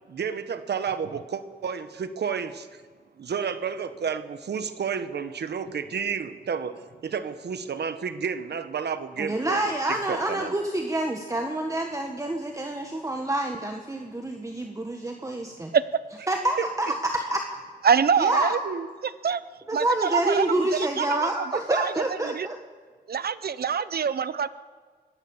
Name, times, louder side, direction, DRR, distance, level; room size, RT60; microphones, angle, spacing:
voice 1, 0.1-2.7 3.2-6.7 7.0-10.5 16.6-16.9 18.6-18.9, right 6 dB, 85° right, 11 dB, 1.2 m, -31 dB
voice 2, 9.2-15.7 16.3-17.4 18.2-18.6 19.7-22.6, right 1 dB, 20° right, 3 dB, 1.7 m, -27 dB
voice 3, 17.8-18.6 19.2-19.4 19.7-20.5 20.7-21.3 21.7-21.9 22.2-22.5 23.1-24.5, right 7 dB, 70° right, 15 dB, 0.8 m, -24 dB
25.5 x 19.0 x 7.3 m, 1.5 s
wide cardioid pair, 95°, 17 cm